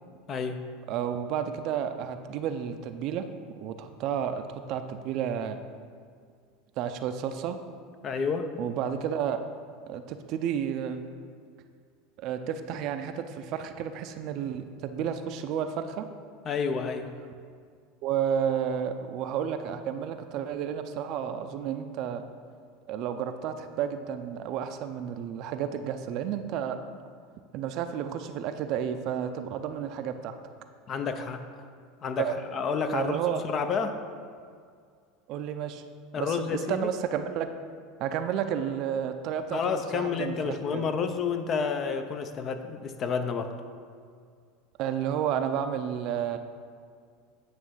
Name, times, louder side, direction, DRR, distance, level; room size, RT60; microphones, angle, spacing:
voice 1, 0.3-0.6 8.0-8.5 16.5-17.1 30.9-31.4 32.0-34.0 36.1-36.9 39.5-43.5, left 5 dB, 40° left, 8 dB, 0.6 m, -30 dB
voice 2, 0.9-3.2 3.6-5.6 6.8-7.6 8.6-9.4 9.9-11.0 12.2-16.1 18.0-22.2 22.9-26.8 27.5-30.4 32.2-32.3 32.9-33.4 35.3-35.8 36.2-37.5 38.0-40.9 44.8-46.4, right 8 dB, 55° right, 8 dB, 0.5 m, -31 dB
9.2 x 3.2 x 6.3 m, 2.1 s
supercardioid pair, 105°, 0 cm